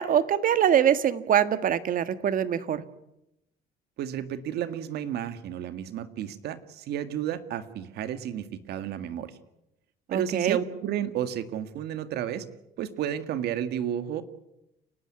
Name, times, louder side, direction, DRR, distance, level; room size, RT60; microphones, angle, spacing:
voice 1, 0.0-2.8 10.1-10.6, right 9 dB, 55° right, 12 dB, 1.6 m, -23 dB
voice 2, 4.0-9.3 10.1-12.5 12.8-14.2, right 10 dB, 75° right, 11 dB, 1.9 m, -32 dB
30.0 x 13.0 x 9.7 m, 0.86 s
cardioid pair, 110°, 17 cm